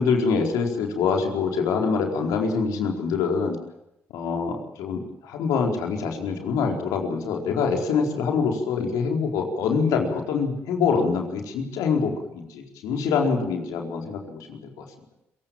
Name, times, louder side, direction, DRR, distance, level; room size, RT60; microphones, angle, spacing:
voice 1, 0.0-3.6 4.1-14.8, left 5 dB, 85° left, 3 dB, 4.5 m, -25 dB
26.5 x 17.0 x 8.9 m, 0.85 s
supercardioid pair, 60°, 6 cm